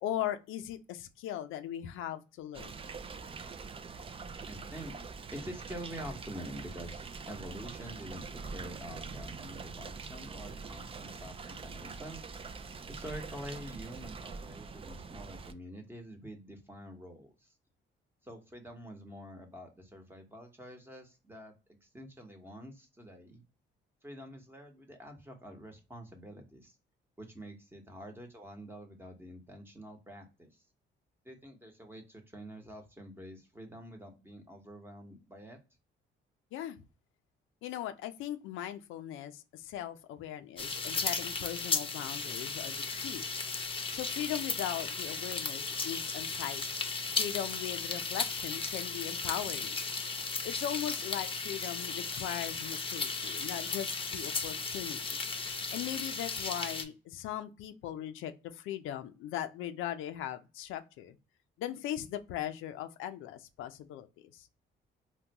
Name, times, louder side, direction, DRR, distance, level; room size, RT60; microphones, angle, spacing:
voice 1, 0.0-2.7 36.5-36.8 37.6-43.2 43.9-46.6 47.1-49.8 50.4-55.2 55.7-61.2 61.6-64.5, left 11 dB, 90° left, 0.5 m, -39 dB
sound 1, 2.5-15.5, right 4 dB, 30° right, 0.4 m, -44 dB
voice 2, 4.5-4.9 5.3-12.2 12.9-17.5 18.2-21.5 21.8-23.4 24.0-26.7 27.2-30.6 31.2-35.6, equal, 10° right, 1.0 m, -47 dB
sound 2, 40.6-56.8, left 4 dB, 25° left, 0.7 m, -35 dB
3.7 x 2.2 x 2.8 m
cardioid pair, 90°, 20 cm